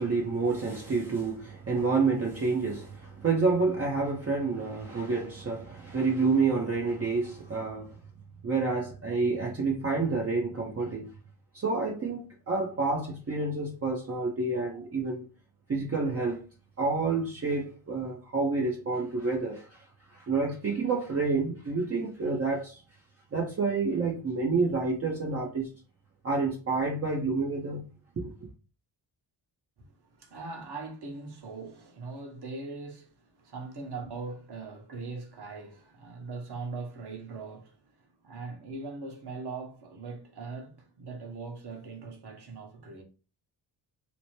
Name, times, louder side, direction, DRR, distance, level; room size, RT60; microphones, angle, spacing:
voice 1, 0.0-8.0 8.4-11.1 11.5-15.2 15.7-16.5 16.8-19.8 20.1-22.8 23.3-25.7 26.2-27.8 28.2-28.3, right 4 dB, 30° right, 0.7 m, -29 dB
voice 2, 29.8-43.0, right 3 dB, 50° right, 1.1 m, -41 dB
2.9 x 2.0 x 3.1 m
cardioid pair, 65°, 49 cm